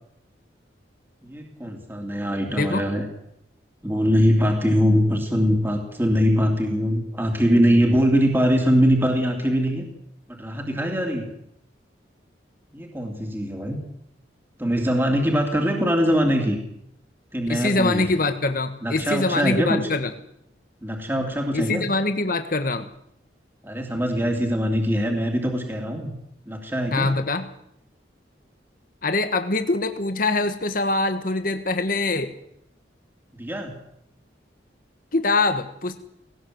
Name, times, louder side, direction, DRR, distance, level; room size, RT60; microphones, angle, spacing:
voice 1, 1.2-3.0 3.8-9.9 10.4-11.3 12.7-13.8 14.6-16.6 17.3-18.1 18.8-19.8 20.8-21.9 23.6-26.1 26.5-27.2 33.4-33.7, equal, 10° right, 1 dB, 2.8 m, -22 dB
voice 2, 2.5-2.8 17.5-20.1 21.5-22.8 26.9-27.5 29.0-32.3 35.1-36.0, left 3 dB, 50° left, 8 dB, 1.4 m, -24 dB
19.0 x 18.0 x 7.8 m, 0.76 s
head